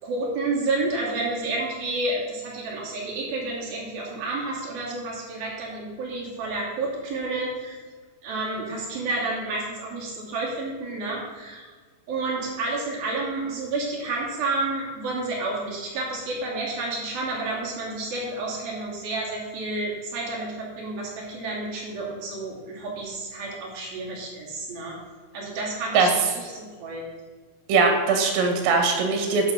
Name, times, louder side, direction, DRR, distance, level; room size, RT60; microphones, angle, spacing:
voice 1, 0.0-7.8 8.2-11.7 12.1-25.0 25.3-27.0, right 2 dB, 55° right, -4 dB, 3.8 m, -30 dB
voice 2, 27.7-29.5, right 4 dB, 85° right, 3 dB, 4.3 m, -20 dB
11.0 x 5.7 x 5.7 m, 1.5 s
omnidirectional pair, 5.7 m